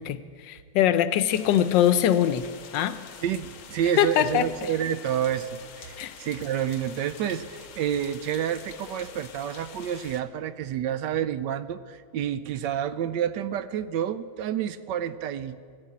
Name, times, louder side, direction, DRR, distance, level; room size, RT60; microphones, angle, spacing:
voice 1, 0.0-2.5 2.7-3.0 4.0-4.5 6.0-6.1, left 10 dB, 75° left, 13 dB, 1.2 m, -22 dB
sound 1, 1.3-10.2, left 7 dB, 55° left, 1.0 m, -46 dB
voice 2, 3.2-15.6, right 9 dB, 75° right, 13 dB, 1.1 m, -29 dB
14.5 x 9.7 x 8.5 m, 2.1 s
omnidirectional pair, 2.1 m